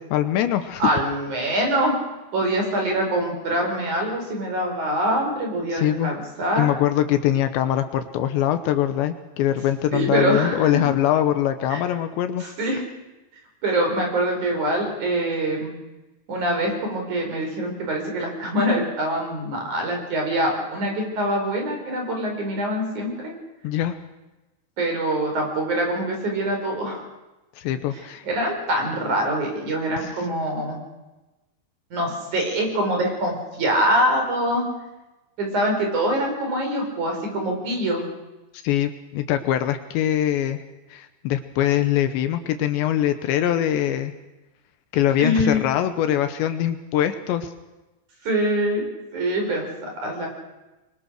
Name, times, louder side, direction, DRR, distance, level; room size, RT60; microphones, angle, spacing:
voice 1, 0.0-0.8 5.7-6.1 6.6-12.4 23.6-24.0 27.6-28.3 30.0-30.1 38.6-40.6 40.9-44.1 44.9-47.5, left 11 dB, 75° left, 9 dB, 3.0 m, -23 dB
voice 2, 0.8-2.0 2.3-6.7 9.9-10.8 11.7-11.8 12.4-12.8 13.6-15.8 16.3-23.3 24.8-27.1 27.9-30.8 31.9-34.7 35.4-38.0 45.2-45.6 48.2-48.8 49.1-50.3, right 1 dB, 40° right, 2 dB, 5.8 m, -24 dB
24.0 x 23.5 x 6.5 m, 1.1 s
omnidirectional pair, 5.5 m